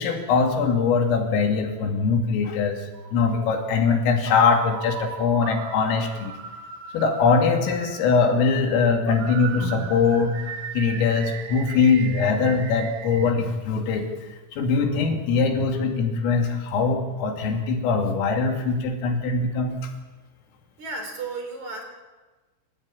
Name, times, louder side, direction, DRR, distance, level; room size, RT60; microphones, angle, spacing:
voice 1, 0.0-2.8 3.1-6.4 6.9-10.4 10.7-14.1 14.5-19.9, left 5 dB, 85° left, 3 dB, 5.2 m, -22 dB
sound 1, 2.9-3.7 4.6-8.7 9.1-13.3, right 7 dB, 60° right, 3.1 m, -38 dB
voice 2, 20.8-21.8, right 3 dB, 40° right, 4 dB, 4.7 m, -33 dB
29.5 x 14.0 x 8.7 m, 1.2 s
omnidirectional pair, 5.9 m